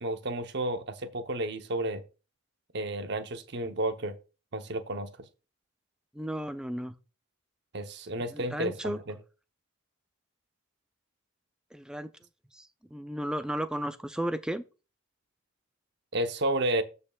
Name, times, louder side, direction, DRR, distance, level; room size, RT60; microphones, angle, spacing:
voice 1, 0.0-2.0 2.7-4.1 4.5-5.1 7.7-9.2 16.1-16.8, right 1 dB, 55° right, 0.8 m, -31 dB
voice 2, 6.1-6.9 8.3-9.0 11.7-12.1 12.5-14.6, right 1 dB, 5° right, 0.4 m, -34 dB
15.5 x 5.5 x 2.3 m
head